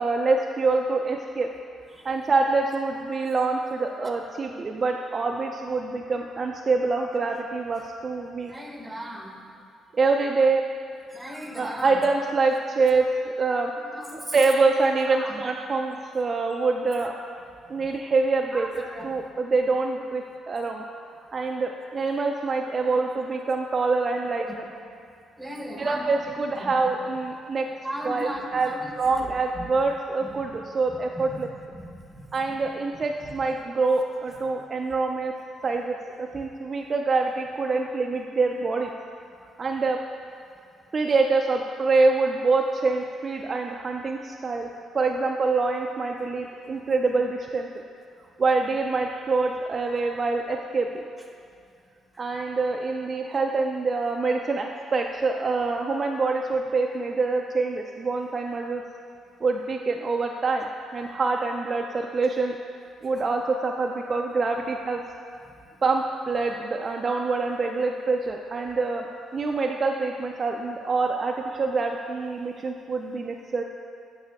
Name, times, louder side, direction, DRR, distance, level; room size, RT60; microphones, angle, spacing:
voice 1, 0.0-1.5 2.0-8.5 9.9-10.6 11.6-13.7 14.1-17.1 17.7-18.7 19.0-20.8 21.3-24.5 25.8-27.7 28.0-28.7 29.0-31.5 32.3-35.4 35.6-38.9 39.6-40.0 40.9-44.7 44.9-47.7 48.4-51.0 52.2-58.8 59.4-62.6 63.0-65.0 65.8-69.1 69.3-73.6, right 3 dB, 40° right, 2 dB, 0.4 m, -25 dB
voice 2, 8.5-9.3 11.1-12.0 13.9-14.3 15.1-15.4 17.7-17.9 18.5-19.1 22.8-23.0 24.4-24.5 25.4-26.7 27.8-28.9 29.6-29.7 30.2-30.5 31.3-31.5 31.7-32.7 33.2-33.3, equal, 10° right, 1 dB, 1.0 m, -37 dB
9.3 x 5.5 x 3.5 m, 2.4 s
cardioid pair, 90°, 0 cm